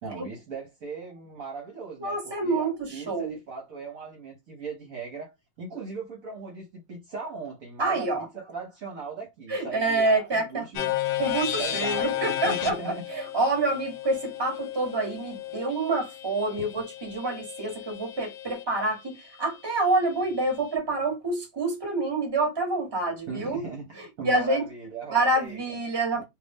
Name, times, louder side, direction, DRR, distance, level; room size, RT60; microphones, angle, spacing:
voice 1, 0.0-10.9 11.6-13.0 16.6-16.7 23.3-25.8 26.1-26.2, right 4 dB, 55° right, 1.1 m, -38 dB
voice 2, 2.0-3.4 7.8-8.2 9.5-10.6 11.2-23.6 24.0-24.6 25.1-26.2, right 2 dB, 15° right, 1.1 m, -27 dB
sound 1, 10.8-18.6, left 11 dB, 80° left, 1.4 m, -33 dB
2.9 x 2.5 x 3.5 m
omnidirectional pair, 2.0 m